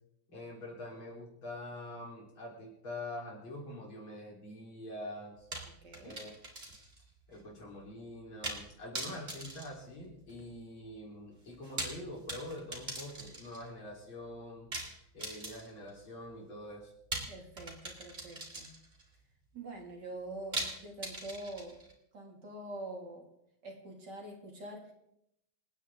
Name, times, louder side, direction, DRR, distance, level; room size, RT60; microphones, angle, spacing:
voice 1, 0.3-5.5 6.0-6.3 7.3-14.7 15.1-16.9, left 1 dB, 70° left, -2 dB, 4.8 m, -45 dB
sound 1, 5.5-7.0 7.3-7.4 8.4-8.7 8.9-10.5 11.5-13.7 14.7-15.9 17.1-19.0 20.5-21.9, right 2 dB, 30° right, 3.2 m, -41 dB
voice 2, 5.6-6.2 17.3-18.8 19.5-21.8 22.1-23.3 23.6-24.9, right 2 dB, 55° right, 1 dB, 3.1 m, -45 dB
27.0 x 9.3 x 3.8 m, 0.79 s
omnidirectional pair, 2.3 m